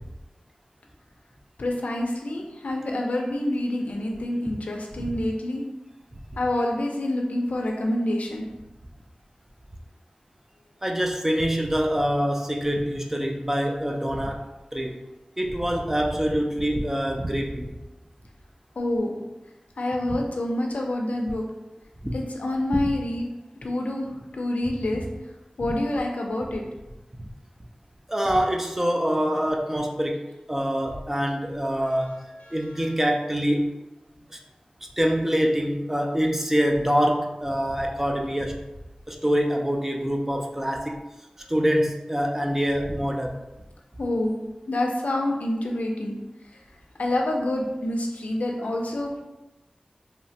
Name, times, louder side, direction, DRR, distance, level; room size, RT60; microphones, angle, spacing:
voice 1, 1.6-5.6 6.4-8.4 18.8-19.1 19.8-21.4 22.1-23.3 23.6-25.0 25.6-26.6 31.9-32.1 32.4-32.9 44.0-44.4 44.7-46.1 46.5-46.6 47.0-49.2, left 1 dB, 90° left, 1 dB, 0.4 m, -27 dB
voice 2, 10.8-14.4 14.7-15.0 15.4-17.8 22.0-22.2 22.7-22.8 28.1-32.2 32.5-33.7 34.3-34.4 35.0-38.6 39.1-41.1 41.5-43.4, equal, 15° right, 1 dB, 0.3 m, -25 dB
3.1 x 2.1 x 2.7 m, 1.0 s
wide cardioid pair, 65°, 2 cm